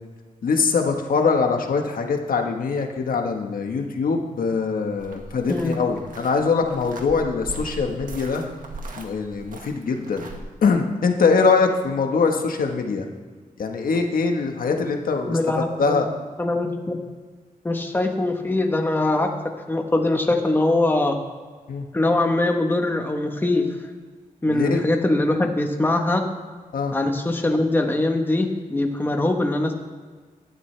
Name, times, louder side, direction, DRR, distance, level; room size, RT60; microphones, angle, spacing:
voice 1, 0.4-8.4 9.0-10.3 10.6-13.0 13.6-15.4 15.8-16.1 21.7-21.8 24.5-24.8 26.7-26.9, left 4 dB, 80° left, 4 dB, 1.4 m, -22 dB
sound 1, 5.0-10.4, right 2 dB, 70° right, 1.7 m, -39 dB
voice 2, 5.5-5.8 15.3-16.1 16.4-17.0 17.6-19.3 19.7-21.2 21.9-23.6 24.4-26.2 26.9-29.7, left 2 dB, 15° left, 3 dB, 1.2 m, -22 dB
18.0 x 12.5 x 3.4 m, 1.5 s
wide cardioid pair, 150°, 15 cm